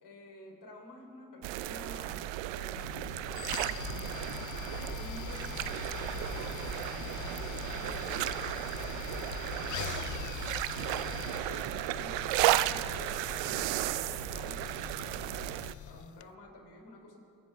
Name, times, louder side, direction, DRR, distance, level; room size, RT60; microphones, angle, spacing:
voice 1, 0.0-2.2 2.5-3.3 4.9-10.4 10.9-15.6 15.9-17.2, left 1 dB, 60° left, 1 dB, 3.4 m, -51 dB
sound 1, 1.4-15.7, right 15 dB, 80° right, 0.6 m, -34 dB
sound 2, 2.8-16.3, left 13 dB, 45° left, 0.4 m, -42 dB
sound 3, 4.5-10.1, left 5 dB, 85° left, 1.6 m, -59 dB
22.5 x 12.5 x 3.4 m, 2.5 s
supercardioid pair, 60°, 44 cm